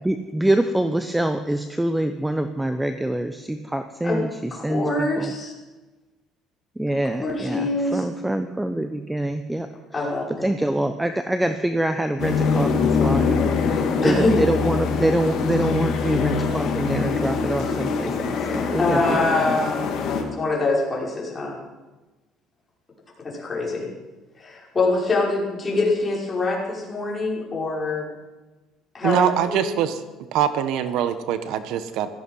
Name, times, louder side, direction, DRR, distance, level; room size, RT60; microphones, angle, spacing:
voice 1, 0.0-5.3 6.8-10.1 10.4-13.4 13.7-19.6, right 1 dB, 5° right, 8 dB, 0.8 m, -25 dB
voice 2, 4.5-5.5 7.2-8.1 9.9-10.2 14.0-14.4 18.8-19.8 20.4-21.6 23.2-23.9 24.4-28.1 28.9-29.6, left 2 dB, 25° left, -3 dB, 5.8 m, -24 dB
sound 1, 12.2-20.2, left 5 dB, 60° left, 2.7 m, -23 dB
voice 3, 29.0-30.0 30.3-32.1, right 10 dB, 75° right, 11 dB, 1.2 m, -23 dB
16.5 x 14.0 x 5.6 m, 1.2 s
cardioid pair, 120°, 0 cm